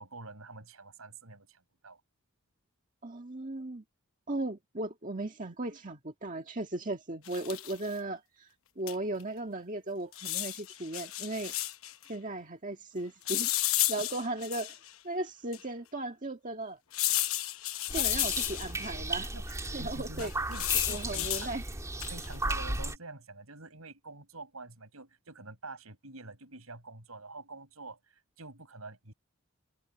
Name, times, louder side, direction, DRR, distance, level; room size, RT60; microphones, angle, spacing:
voice 1, 0.0-2.0 14.0-14.1 17.7-18.1 19.3-21.6 22.1-29.1, right 3 dB, 80° right, 6.1 m, -47 dB
voice 2, 3.0-3.8 4.3-8.5 8.8-11.5 12.1-13.5 13.9-14.7 15.0-16.8 17.9-19.3 19.7-20.3 20.9-21.6, right 2 dB, 35° right, 1.9 m, -36 dB
sound 1, 7.2-7.9 8.9-9.0 9.2-9.3 10.1-11.9 13.3-14.9 15.5-15.6 16.9-18.9 20.2-21.5 22.0-22.3, left 15 dB, 70° left, 1.0 m, -32 dB
sound 2, 17.9-23.0, right 2 dB, 15° right, 2.8 m, -36 dB
head